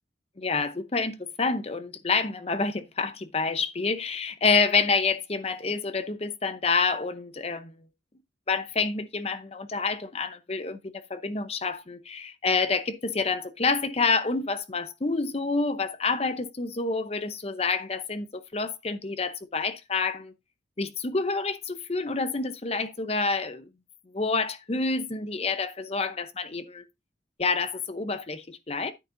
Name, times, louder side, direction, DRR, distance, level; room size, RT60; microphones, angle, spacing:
voice 1, 0.4-7.8 8.5-20.3 20.8-23.7 24.1-26.9 27.4-28.9, left 4 dB, 35° left, 0.7 m, -28 dB
10.0 x 8.5 x 2.6 m
head